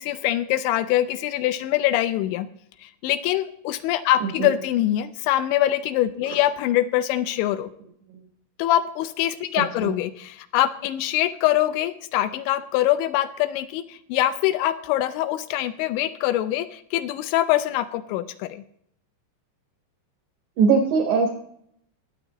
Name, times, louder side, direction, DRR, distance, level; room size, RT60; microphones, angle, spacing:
voice 1, 0.0-2.5 2.8-7.7 8.6-18.6, left 13 dB, 80° left, 11 dB, 2.9 m, -24 dB
voice 2, 20.6-21.3, right 5 dB, 75° right, 3 dB, 1.8 m, -20 dB
22.0 x 8.4 x 2.9 m, 0.71 s
omnidirectional pair, 5.4 m